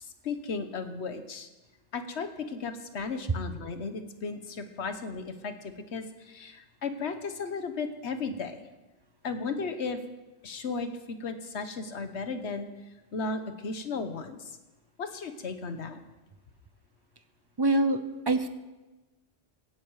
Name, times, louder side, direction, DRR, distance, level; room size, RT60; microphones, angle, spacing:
voice 1, 0.2-1.5 1.9-8.6 9.2-10.0 10.4-12.7 13.1-14.6 15.0-16.0, left 4 dB, 70° left, 9 dB, 1.4 m, -35 dB
voice 2, 17.6-18.5, right 2 dB, 25° right, 11 dB, 0.6 m, -25 dB
16.5 x 10.5 x 4.8 m, 1.1 s
omnidirectional pair, 1.2 m